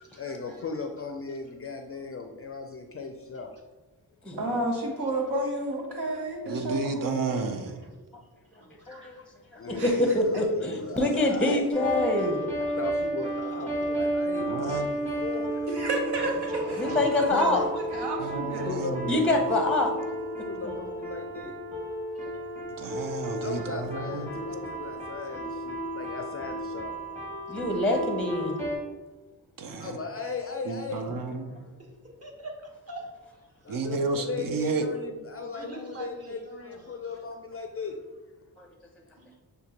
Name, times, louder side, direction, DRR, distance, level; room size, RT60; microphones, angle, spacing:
voice 1, 0.0-3.5 6.1-6.3 7.2-7.3 9.1-9.2 9.6-11.6 12.6-15.7 17.3-17.7 18.7-19.7 20.5-21.6 23.4-26.9 28.3-29.0 29.8-31.7 33.6-38.0, left 4 dB, 35° left, 4 dB, 0.4 m, -37 dB
voice 2, 4.4-7.3 9.7-10.0 15.7-16.9 17.2-18.7, right 1 dB, 80° right, 1 dB, 1.0 m, -31 dB
voice 3, 6.5-7.8 14.4-14.9 18.2-19.2 22.8-24.3 29.6-29.9 30.6-31.5 33.7-34.9, right 3 dB, 60° right, 7 dB, 0.6 m, -31 dB
voice 4, 8.5-9.2 12.3-12.4 16.2-17.2 17.5-17.7 22.1-22.3 31.6-31.9 32.2-32.5 32.9-33.8 35.4-37.2 39.2-39.3, right 1 dB, 40° right, -1 dB, 1.2 m, -43 dB
voice 5, 9.8-12.4 16.8-17.6 19.1-19.9 27.5-28.6 38.6-38.7, left 1 dB, 5° left, 2 dB, 0.7 m, -25 dB
sound 1, 11.7-28.8, right 1 dB, 20° right, 1.3 m, -33 dB
6.4 x 2.2 x 2.9 m, 1.2 s
cardioid pair, 55°, 39 cm